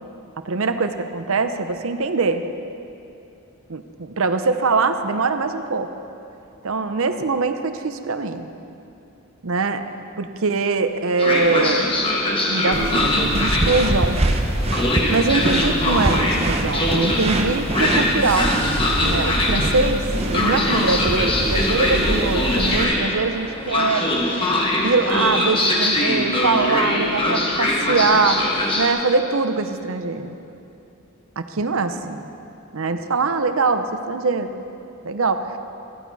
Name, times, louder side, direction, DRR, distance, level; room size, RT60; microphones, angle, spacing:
voice 1, 0.4-2.4 3.7-5.9 6.6-8.5 9.4-9.8 10.2-11.9 12.5-14.2 15.1-18.5 19.0-20.0 20.3-24.1 24.8-30.4 31.4-32.3 32.7-34.5 35.0-35.6, right 4 dB, 65° right, 9 dB, 0.7 m, -22 dB
Train, 11.2-28.9, left 1 dB, 25° left, 1.3 m, -22 dB
sound 1, 12.7-22.8, right 1 dB, 25° right, 0.7 m, -24 dB
15.0 x 14.0 x 4.1 m, 2.7 s
head